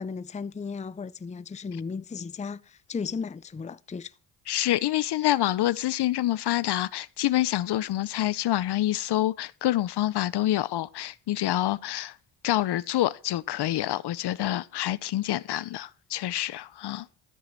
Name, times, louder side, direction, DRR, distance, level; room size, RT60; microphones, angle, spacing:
voice 1, 0.0-4.1 5.2-5.3, left 5 dB, 15° left, 0.6 m, -35 dB
voice 2, 4.5-12.1 12.4-17.1, left 14 dB, 55° left, 0.7 m, -27 dB
13.5 x 4.9 x 7.4 m
supercardioid pair, 70°, 47 cm